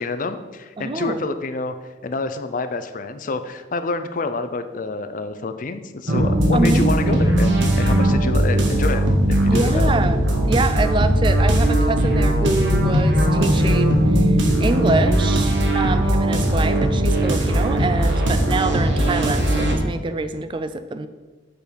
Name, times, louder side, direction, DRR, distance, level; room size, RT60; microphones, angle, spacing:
voice 1, 0.0-1.8 2.0-9.1 9.4-10.0, left 3 dB, 45° left, 10 dB, 0.5 m, -28 dB
voice 2, 0.8-1.2 6.5-7.2 9.5-21.1, right 3 dB, 25° right, 11 dB, 0.3 m, -25 dB
sound 1, 6.1-19.7, right 1 dB, 75° right, 1.2 m, -18 dB
6.9 x 4.6 x 5.1 m, 1.3 s
head